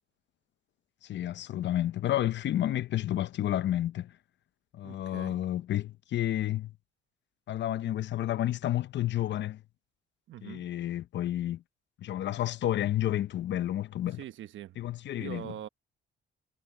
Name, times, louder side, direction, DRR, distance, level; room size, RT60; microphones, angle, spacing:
voice 1, 1.0-4.1 4.7-6.7 7.5-9.6 10.4-11.6 12.0-14.2 14.8-15.5, left 12 dB, 65° left, 0.7 m, -30 dB
voice 2, 4.8-5.4 10.3-10.7 14.2-14.8 15.2-15.7, right 12 dB, 75° right, 1.2 m, -43 dB
cardioid pair, 90°, 20 cm